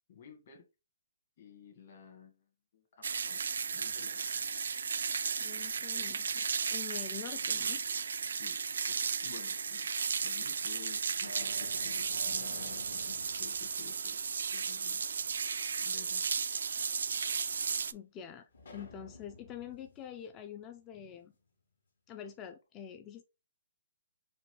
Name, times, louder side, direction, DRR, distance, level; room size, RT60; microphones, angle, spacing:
voice 1, 0.1-0.6 1.4-2.4 2.7-3.4 3.7-4.5 8.3-8.6 8.9-9.9 10.2-14.2 14.5-15.0 15.8-16.3, left 7 dB, 45° left, 1.3 m, -53 dB
sound 1, 3.0-17.9, right 6 dB, 75° right, 0.3 m, -34 dB
sound 2, 3.4-4.4 4.8-6.1 7.3-8.1 9.0-9.1 10.0-10.1 10.7-14.8 15.1-15.2 18.5-21.3, left 2 dB, 80° left, 1.7 m, -53 dB
voice 2, 5.4-7.8 17.9-21.3 22.1-23.2, left 9 dB, 20° left, 0.3 m, -46 dB
5.1 x 2.2 x 3.0 m
hypercardioid pair, 160°, 0 cm